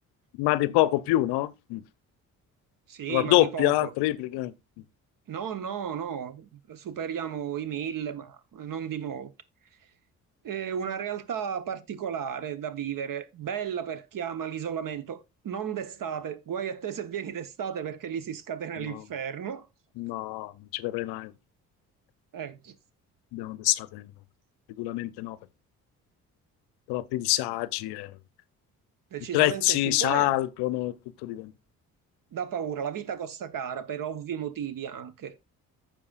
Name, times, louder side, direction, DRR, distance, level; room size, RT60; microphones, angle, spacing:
voice 1, 0.4-1.8 3.1-4.5 18.9-19.0 20.0-21.3 23.3-24.1 24.8-25.4 26.9-28.1 29.3-30.9 31.2-31.5, left 17 dB, 65° left, 0.7 m, -26 dB
voice 2, 2.9-3.9 5.3-9.3 10.4-19.7 22.3-22.7 29.1-30.3 32.3-35.4, right 8 dB, 50° right, 1.1 m, -34 dB
14.5 x 5.2 x 2.5 m
hypercardioid pair, 45°, 43 cm